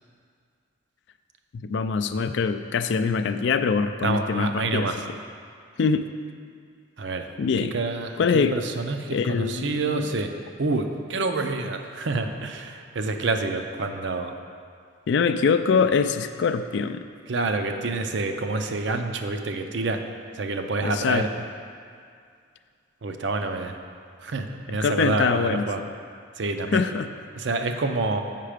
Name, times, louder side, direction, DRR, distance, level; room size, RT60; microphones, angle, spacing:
voice 1, 1.5-4.9 5.8-6.1 7.4-7.8 8.2-8.6 9.1-10.0 15.1-17.0 20.8-21.3 24.7-25.9 26.7-27.1, left 5 dB, 60° left, 9 dB, 0.3 m, -24 dB
voice 2, 4.0-5.0 7.0-7.3 7.7-10.3 10.6-14.3 17.3-20.0 20.3-21.3 23.0-23.8 24.2-25.8 26.4-26.8 27.4-28.2, right 3 dB, 60° right, 6 dB, 0.5 m, -27 dB
7.5 x 5.7 x 5.0 m, 2.2 s
head